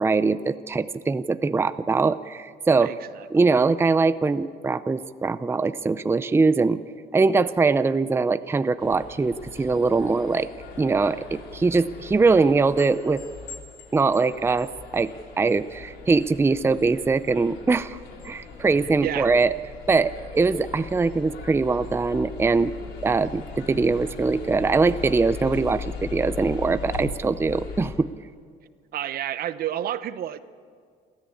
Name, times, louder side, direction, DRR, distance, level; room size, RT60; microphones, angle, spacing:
voice 1, 0.0-2.9 3.3-6.8 7.1-10.5 10.8-13.2 13.9-15.1 15.4-18.0 18.2-19.5 19.9-22.7 23.0-28.1, right 4 dB, 15° right, 13 dB, 0.5 m, -22 dB
voice 2, 2.8-3.3 19.0-19.3 28.9-30.4, right 11 dB, 65° right, 14 dB, 0.9 m, -30 dB
sound 1, 8.8-27.9, left 5 dB, 80° left, 4.1 m, -39 dB
28.0 x 13.5 x 8.5 m, 2.1 s
cardioid pair, 110°, 17 cm